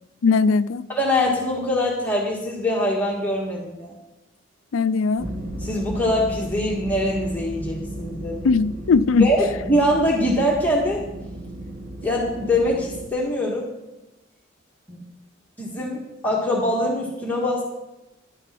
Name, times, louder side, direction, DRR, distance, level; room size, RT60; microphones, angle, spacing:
voice 1, 0.2-0.8 4.7-5.3 8.4-9.3, left 4 dB, 80° left, 0.4 m, -19 dB
voice 2, 0.9-3.9 5.6-8.5 9.2-11.0 12.0-13.7 14.9-15.0 15.6-17.6, left 1 dB, 10° left, 1.7 m, -23 dB
sound 1, 5.2-13.1, right 1 dB, 45° right, 1.3 m, -34 dB
11.5 x 6.8 x 7.5 m
head